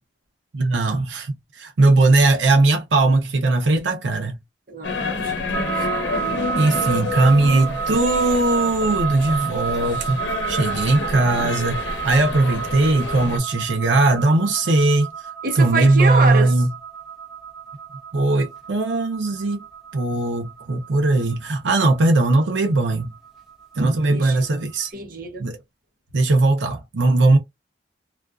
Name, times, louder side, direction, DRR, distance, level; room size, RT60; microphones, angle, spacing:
voice 1, 0.5-4.3 6.5-10.2 10.5-15.1 15.6-16.7 18.1-19.6 19.9-23.1 23.8-24.9 25.4-25.6 26.1-27.4, right 2 dB, 85° right, 0.6 m, -19 dB
voice 2, 4.7-5.7 6.0-6.4 15.4-16.6 24.1-24.4 24.9-25.5, right 4 dB, 50° right, 0.7 m, -26 dB
sound 1, 4.8-13.4, left 3 dB, 80° left, 0.8 m, -29 dB
sound 2, 5.5-24.6, right 8 dB, ahead, 0.9 m, -31 dB
2.4 x 2.3 x 2.3 m
head